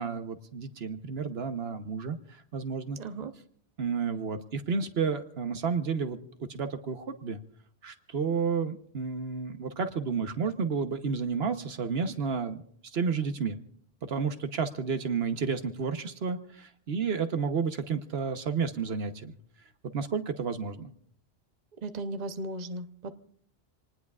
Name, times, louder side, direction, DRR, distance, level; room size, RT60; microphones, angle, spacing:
voice 1, 0.0-3.0 3.8-7.4 7.8-12.6 12.9-13.6 14.0-19.3 19.9-20.9, right 5 dB, 75° right, 9 dB, 1.2 m, -31 dB
voice 2, 3.0-3.3 21.8-23.1, right 2 dB, 45° right, 8 dB, 0.9 m, -36 dB
27.0 x 19.5 x 2.4 m, 0.62 s
omnidirectional pair, 1.1 m